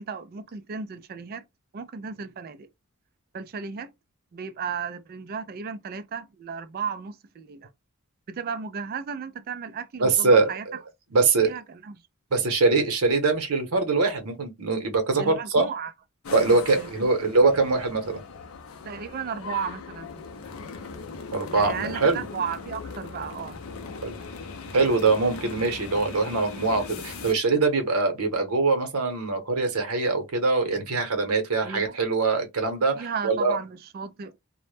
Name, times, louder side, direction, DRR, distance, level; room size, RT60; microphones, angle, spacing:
voice 1, 0.0-1.4 1.7-2.7 3.3-3.9 4.3-7.7 8.3-10.7 11.1-12.0 12.4-12.5 12.8-12.9 15.1-15.9 16.5-17.1 18.8-20.2 21.5-23.6 31.6-32.0 32.9-34.4, right 6 dB, 45° right, 0.3 m, -35 dB
voice 2, 10.0-10.5 11.1-11.5 12.3-15.7 16.3-18.2 21.3-22.2 24.0-24.1 24.7-33.6, right 3 dB, 90° right, 0.8 m, -23 dB
sound 1, 16.2-27.3, left 4 dB, 70° left, 0.5 m, -39 dB
2.1 x 2.0 x 3.1 m
head